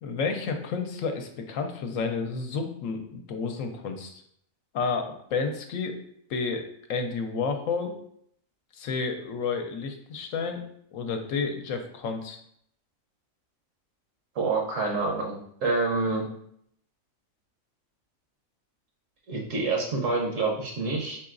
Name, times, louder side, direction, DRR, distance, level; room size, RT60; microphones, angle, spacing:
voice 1, 0.0-4.2 4.7-6.0 6.3-6.6 6.9-7.9 8.7-10.6 10.9-12.4, left 4 dB, 75° left, 5 dB, 0.9 m, -30 dB
voice 2, 14.3-16.3 19.3-21.2, right 3 dB, 70° right, -1 dB, 1.1 m, -27 dB
4.4 x 3.8 x 2.5 m, 0.69 s
omnidirectional pair, 1.4 m